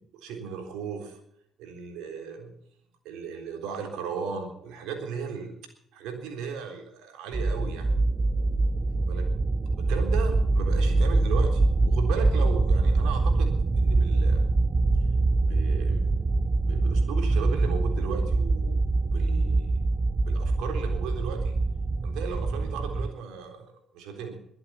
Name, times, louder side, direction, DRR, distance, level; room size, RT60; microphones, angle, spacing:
voice 1, 0.2-1.2 1.6-2.5 3.0-5.5 5.9-7.9 9.0-9.2 9.8-14.4 15.4-16.2 16.7-19.7 20.3-21.6 22.0-24.4, right 6 dB, 60° right, 4 dB, 3.7 m, -36 dB
sound 1, 7.3-23.1, right 3 dB, 25° right, 0.6 m, -24 dB
22.0 x 8.0 x 7.1 m, 0.71 s
figure-of-eight pair, 50°, 0 cm